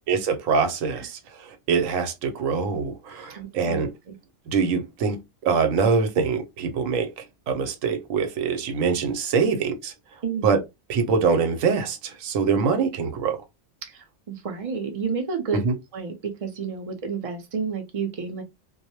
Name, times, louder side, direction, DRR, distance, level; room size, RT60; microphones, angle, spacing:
voice 1, 0.1-1.2 1.7-3.9 4.5-7.1 7.5-9.9 10.4-10.6 10.9-13.4 15.5-15.8, right 5 dB, 85° right, 1.0 m, -24 dB
voice 2, 3.3-4.2 10.2-10.6 13.8-15.6 15.9-18.4, right 5 dB, 50° right, 0.4 m, -31 dB
2.3 x 2.0 x 2.8 m
omnidirectional pair, 1.3 m